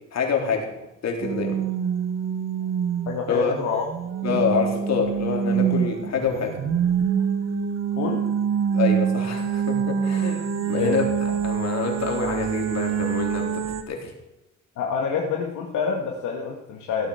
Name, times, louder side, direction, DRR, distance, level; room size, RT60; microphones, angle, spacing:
voice 1, 0.1-0.7 1.0-1.6 3.3-3.5 4.2-6.5 8.7-11.0 11.4-13.4 13.9-14.1, left 5 dB, 60° left, 1 dB, 3.9 m, -26 dB
sound 1, 1.2-13.8, right 8 dB, 60° right, 1.2 m, -25 dB
voice 2, 3.1-3.9 4.3-4.4 8.0-8.2 10.6-11.1 14.8-17.1, left 5 dB, 80° left, 0 dB, 1.9 m, -27 dB
16.5 x 8.8 x 6.5 m, 0.97 s
cardioid pair, 90°, 30 cm